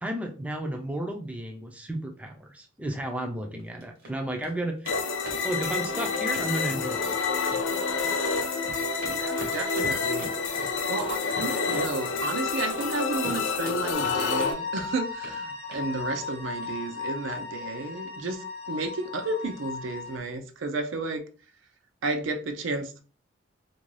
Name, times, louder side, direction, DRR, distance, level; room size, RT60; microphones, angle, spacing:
voice 1, 0.0-5.0 5.4-7.1, right 1 dB, 5° right, 0.4 m, -33 dB
sound 1, 3.6-4.1 4.4-4.5 4.9-5.0 5.2-7.2 7.5-8.2 8.5-12.9 13.2-14.5 14.8-15.4 15.7-15.9 16.2-16.3 16.6-16.7 17.0-17.1, right 1 dB, 50° right, 0.8 m, -42 dB
sound 2, 4.9-14.5, left 4 dB, 75° left, 0.5 m, -28 dB
voice 2, 9.0-10.3 10.6-21.2 22.0-23.0, right 3 dB, 80° right, 0.5 m, -32 dB
sound 3, 13.9-20.2, left 4 dB, 35° left, 0.6 m, -35 dB
2.5 x 2.2 x 3.1 m
head